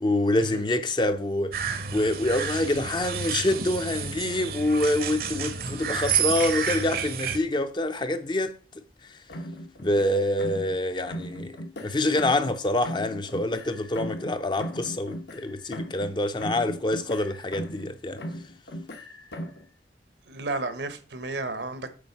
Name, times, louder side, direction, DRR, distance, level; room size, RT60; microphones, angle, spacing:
voice 1, 0.0-8.5 9.8-11.6 11.8-18.2, left 1 dB, 25° left, 0.5 m, -26 dB
sound 1, 1.5-7.4, right 7 dB, 55° right, 0.8 m, -30 dB
sound 2, 9.3-10.8 11.1-12.6 12.8-16.1 16.4-17.9 18.2-19.7, equal, 75° left, 1.2 m, -38 dB
voice 2, 20.3-21.9, right 2 dB, 75° right, 1.1 m, -32 dB
8.5 x 3.6 x 5.8 m
head